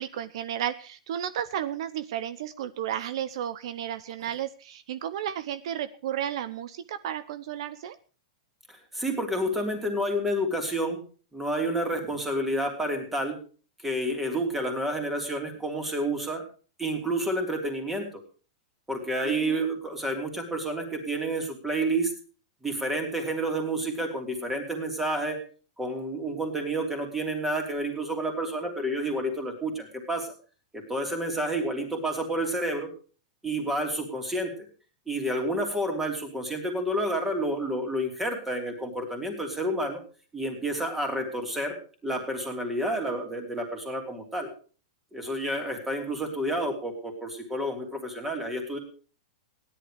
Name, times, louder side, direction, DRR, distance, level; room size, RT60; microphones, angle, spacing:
voice 1, 0.0-8.0 19.2-19.6, right 10 dB, 55° right, 13 dB, 0.8 m, -33 dB
voice 2, 8.7-11.0 11.3-13.4 13.8-16.4 16.8-18.1 18.9-22.1 22.6-25.4 25.8-30.3 30.7-32.9 33.4-34.5 35.1-40.0 40.3-44.5 45.1-48.8, right 1 dB, 5° right, 3 dB, 3.1 m, -29 dB
16.5 x 11.0 x 5.0 m, 0.39 s
supercardioid pair, 170°, 3 cm